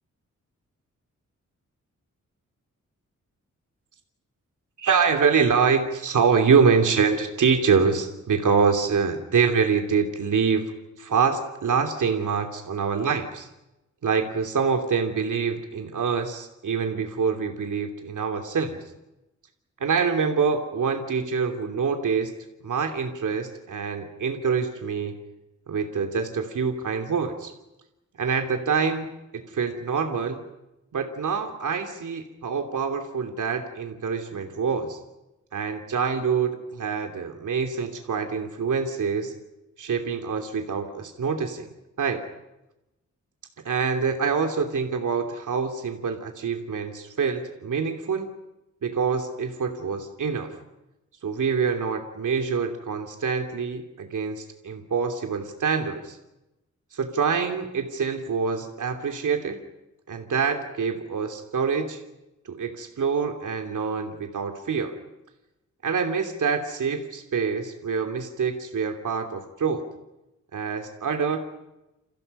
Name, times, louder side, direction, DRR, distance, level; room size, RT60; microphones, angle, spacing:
voice 1, 4.8-13.5 14.0-18.8 19.8-22.3 22.6-25.1 25.7-27.5 28.2-29.1 29.3-30.4 30.9-35.0 35.5-39.3 39.8-41.7 42.0-42.2 43.6-48.3 48.8-50.6 51.2-56.2 56.9-59.6 60.1-62.0 62.4-65.0 65.8-69.8 70.5-71.4, right 5 dB, 85° right, 5 dB, 2.9 m, -25 dB
30.0 x 29.5 x 5.5 m, 0.95 s
wide cardioid pair, 125°, 30 cm